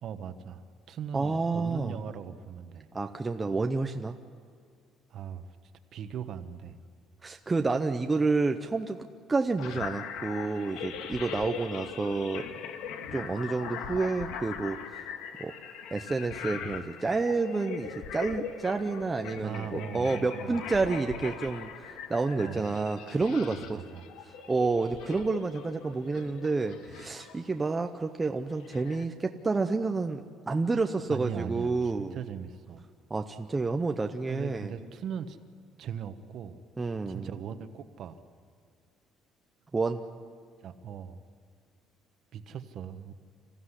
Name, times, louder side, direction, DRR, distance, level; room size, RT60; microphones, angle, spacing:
voice 1, 0.0-2.9 5.1-5.6 5.9-6.8 19.4-20.6 22.4-22.7 23.5-24.1 31.1-32.8 34.3-35.4 35.8-36.6 37.1-38.2 40.6-41.2 42.3-43.1, right 8 dB, 45° right, 9 dB, 1.2 m, -39 dB
voice 2, 1.1-2.0 2.9-4.1 7.2-12.5 13.1-15.1 15.4-15.5 15.9-23.8 24.2-32.2 33.1-34.7 36.8-37.3 39.7-40.0, right 3 dB, 15° right, 5 dB, 0.6 m, -29 dB
sound 1, 9.6-27.5 28.5-29.0, left 7 dB, 80° left, 1.6 m, -41 dB
27.0 x 15.5 x 9.8 m, 2.2 s
cardioid pair, 180°, 0 cm